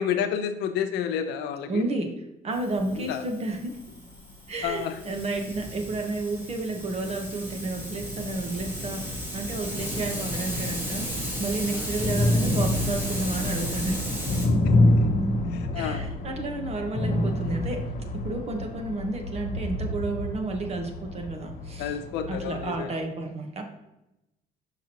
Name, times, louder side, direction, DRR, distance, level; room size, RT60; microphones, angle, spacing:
voice 1, 0.0-1.8 2.9-3.2 4.6-4.9 11.7-11.9 15.5-16.0 21.8-22.9, left 8 dB, 90° left, 7 dB, 0.7 m, -30 dB
voice 2, 1.7-3.8 4.5-14.0 14.9-15.0 15.7-17.8 18.1-22.0 22.3-23.6, right 2 dB, 40° right, 4 dB, 1.1 m, -31 dB
Hiss, 2.5-14.5, equal, 10° right, 1.5 m, -34 dB
sound 1, 4.0-4.1 4.7-4.8 5.7-5.8 6.4-6.5 8.5-8.6 9.0-9.1 10.2-10.3 10.6-22.8, left 1 dB, 50° left, 1.1 m, -27 dB
6.0 x 5.9 x 3.0 m, 0.90 s
cardioid pair, 110°, 17 cm